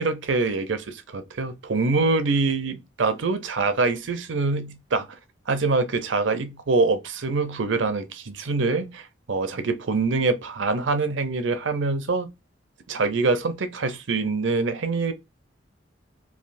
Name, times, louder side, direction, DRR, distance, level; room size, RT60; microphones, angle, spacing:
voice 1, 0.0-5.1 5.5-12.3 12.9-15.1, right 3 dB, 80° right, 0.6 m, -24 dB
3.3 x 2.4 x 2.5 m
head